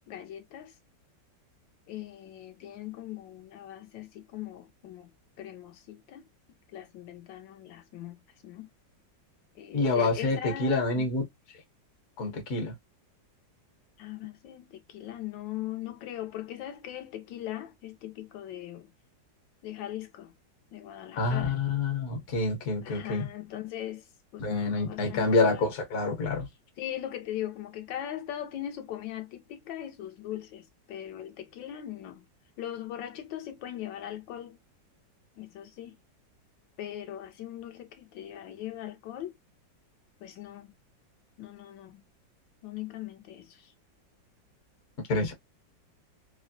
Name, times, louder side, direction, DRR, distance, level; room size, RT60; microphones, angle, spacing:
voice 1, 0.1-0.7 1.9-5.1 5.4-6.2 6.7-8.2 8.4-8.7 9.5-11.1 14.0-18.9 19.6-20.3 20.7-21.5 22.8-24.0 24.3-25.6 26.8-32.2 32.6-34.6 35.4-35.9 36.8-39.3 40.2-40.7 41.4-42.0 42.6-43.7, left 12 dB, 85° left, 1.4 m, -40 dB
voice 2, 9.7-11.3 12.2-12.7 21.2-23.3 24.4-26.5 45.1-45.3, left 3 dB, 55° left, 1.3 m, -27 dB
3.4 x 2.1 x 2.4 m
omnidirectional pair, 2.0 m